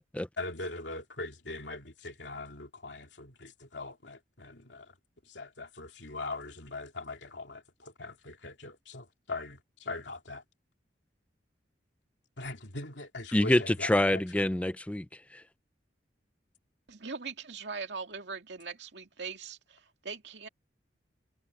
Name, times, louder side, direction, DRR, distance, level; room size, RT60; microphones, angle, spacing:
voice 1, 0.4-4.9 5.2-10.4 12.4-14.5, left 2 dB, 90° left, 2.8 m, -41 dB
voice 2, 13.3-15.4, left 1 dB, 10° left, 0.4 m, -27 dB
voice 3, 16.9-20.5, right 5 dB, 75° right, 2.6 m, -41 dB
head